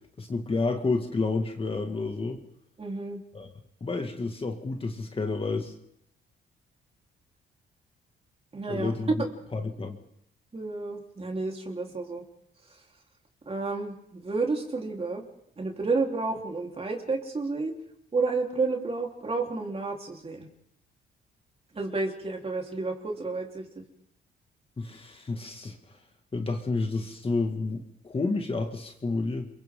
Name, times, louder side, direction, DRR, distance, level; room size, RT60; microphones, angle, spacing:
voice 1, 0.2-2.4 3.3-3.5 3.8-5.7 8.7-9.1 9.5-10.0 24.8-26.0 26.3-29.5, left 3 dB, 30° left, 4 dB, 2.1 m, -30 dB
voice 2, 2.8-3.2 8.5-9.0 10.5-12.2 13.5-15.2 15.6-17.8 18.1-20.5 21.7-23.7, right 3 dB, 30° right, 1 dB, 3.9 m, -31 dB
29.5 x 23.0 x 3.8 m, 0.74 s
cardioid pair, 90°, 20 cm